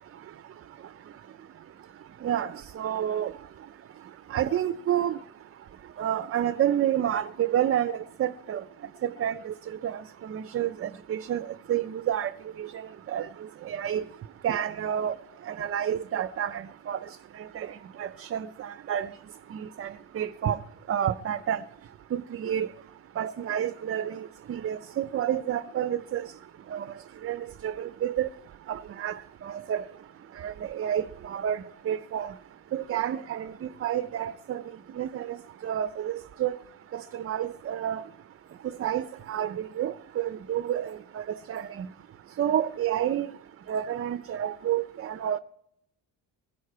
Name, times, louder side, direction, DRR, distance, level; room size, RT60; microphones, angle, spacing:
voice 1, 2.2-3.3 4.3-5.2 6.0-8.6 9.0-9.5 9.8-12.3 12.6-13.3 13.6-14.1 14.4-15.2 15.4-17.0 17.3-19.1 19.5-20.6 20.9-21.6 22.1-22.7 23.2-26.3 26.7-26.9 27.2-28.3 28.7-29.8 30.4-32.3 32.7-34.6 35.0-35.4 35.6-36.6 36.9-38.0 38.8-41.9 42.4-43.3 43.7-45.4, right 10 dB, 35° right, 0.4 m, -30 dB
21.5 x 11.5 x 4.6 m
cardioid pair, 120°, 42 cm